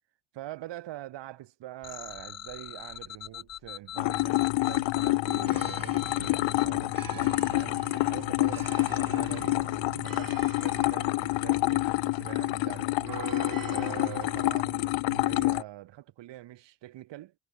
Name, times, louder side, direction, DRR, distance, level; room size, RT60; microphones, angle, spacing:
voice 1, 0.3-9.7 10.0-13.3 13.7-17.3, right 15 dB, 70° right, 1.8 m, -44 dB
sound 1, 1.8-6.7, left 11 dB, 35° left, 0.5 m, -42 dB
sound 2, 4.0-15.6, left 20 dB, 85° left, 0.9 m, -28 dB
sound 3, 5.2-14.6, right 8 dB, 50° right, 5.3 m, -44 dB
cardioid pair, 105°, 44 cm